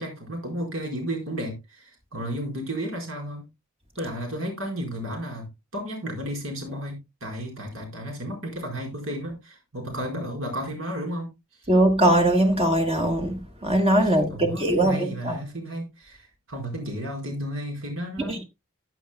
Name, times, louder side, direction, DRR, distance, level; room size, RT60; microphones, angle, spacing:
voice 1, 0.0-3.5 4.0-11.7 14.0-18.4, equal, 75° right, 4.6 m, -33 dB
voice 2, 11.7-15.4 18.3-18.4, right 1 dB, 30° right, 1.4 m, -21 dB
15.0 x 8.8 x 2.2 m
head